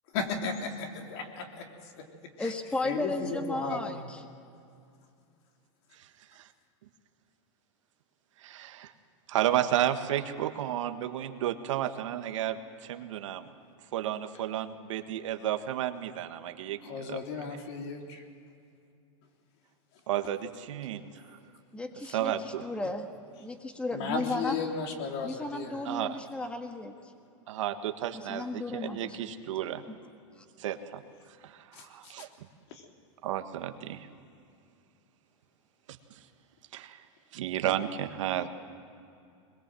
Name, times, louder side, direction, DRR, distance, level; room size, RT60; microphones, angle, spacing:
voice 1, 0.1-2.5 2.8-4.1 16.8-18.2 22.0-22.1 23.9-26.1 31.7-32.3 32.7-32.9, left 5 dB, 55° left, 3 dB, 3.4 m, -36 dB
voice 2, 2.4-4.0 21.7-23.1 23.4-24.6 25.2-26.9 28.1-29.2 30.3-30.4, left 2 dB, 5° left, 6 dB, 1.6 m, -34 dB
voice 3, 6.0-6.5 8.4-8.9 9.3-13.5 13.9-16.8 17.1-17.2 20.1-21.2 22.1-22.6 25.8-26.2 27.5-29.8 30.6-31.0 31.4-32.5 33.2-34.1 36.1-36.2 36.7-37.0 37.3-38.5, right 11 dB, 75° right, 8 dB, 1.6 m, -32 dB
22.5 x 21.5 x 7.7 m, 2.5 s
supercardioid pair, 140°, 16 cm